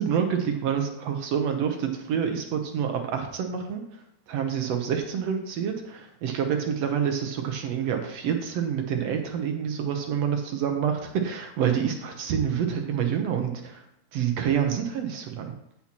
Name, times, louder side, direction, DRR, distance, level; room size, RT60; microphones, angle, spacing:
voice 1, 0.0-3.8 4.3-13.8 14.1-15.5, right 8 dB, 65° right, 4 dB, 1.8 m, -27 dB
14.0 x 5.9 x 2.9 m, 0.79 s
omnidirectional pair, 3.6 m